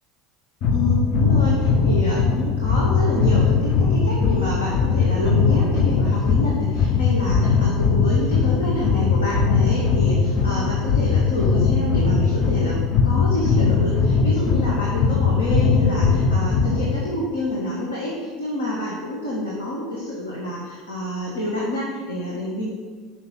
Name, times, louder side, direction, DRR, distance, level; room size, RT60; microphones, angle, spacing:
sound 1, 0.6-17.0, left 5 dB, 50° left, 0.7 m, -20 dB
voice 1, 0.7-22.7, left 1 dB, 80° left, -4 dB, 1.3 m, -28 dB
5.7 x 5.6 x 5.9 m, 1.5 s
figure-of-eight pair, 75°, 0 cm